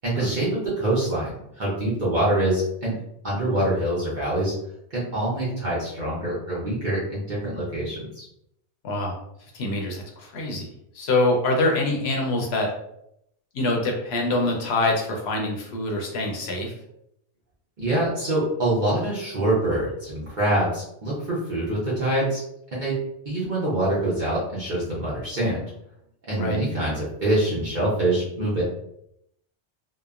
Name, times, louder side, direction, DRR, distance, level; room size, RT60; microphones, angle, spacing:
voice 1, 0.0-3.0 3.2-4.5 4.9-8.3 17.8-22.4 22.7-22.9 23.2-25.6 26.3-28.6, right 1 dB, 45° right, -7 dB, 0.8 m, -25 dB
voice 2, 9.5-12.7 13.5-16.7 26.4-26.6, left 2 dB, 65° left, 0 dB, 0.8 m, -25 dB
2.9 x 2.1 x 2.3 m, 0.77 s
omnidirectional pair, 1.2 m